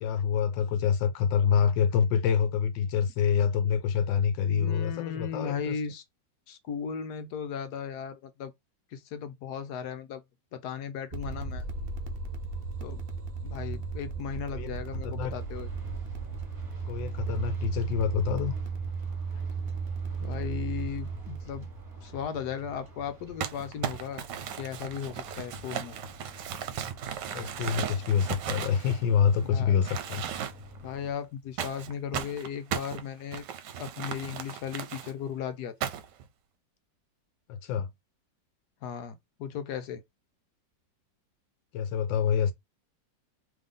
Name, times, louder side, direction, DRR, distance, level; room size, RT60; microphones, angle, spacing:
voice 1, 0.0-5.7 14.5-14.7 15.2-15.3 16.9-18.5 27.3-30.3 37.5-37.9 41.7-42.5, left 7 dB, 85° left, 1.3 m, -26 dB
voice 2, 4.4-6.0 6.5-8.5 8.9-10.2 10.5-11.7 12.8-13.0 13.4-15.7 17.4-17.5 19.3-19.4 20.2-21.7 22.0-24.3 24.6-26.0 29.4-29.8 30.8-33.4 33.8-35.9 38.8-40.0, left 7 dB, 70° left, 1.2 m, -36 dB
sound 1, 11.1-22.8, right 5 dB, 55° right, 0.6 m, -35 dB
sound 2, 15.3-31.1, left 1 dB, 30° right, 1.8 m, -49 dB
Crumpling crinkling, 23.4-29.4 29.8-30.8 31.6-35.1 35.8-36.2, right 9 dB, 75° right, 1.3 m, -36 dB
3.6 x 3.2 x 3.8 m
omnidirectional pair, 2.0 m